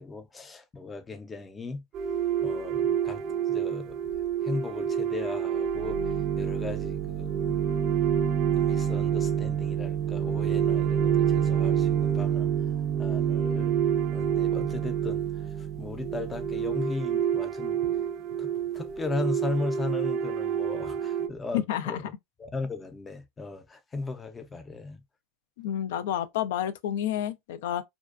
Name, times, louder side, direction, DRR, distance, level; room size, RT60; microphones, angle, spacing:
voice 1, 0.0-1.8 2.4-4.0 4.4-6.0 6.4-7.6 8.5-12.5 13.0-13.8 14.1-15.2 15.6-17.8 18.4-18.5 18.8-22.1 22.4-25.0, left 3 dB, 20° left, 0.4 m, -36 dB
sound 1, 1.9-21.3, right 8 dB, 45° right, 0.4 m, -27 dB
voice 2, 21.5-22.0 25.6-27.8, left 10 dB, 80° left, 0.3 m, -29 dB
2.5 x 2.2 x 2.2 m
supercardioid pair, 120°, 0 cm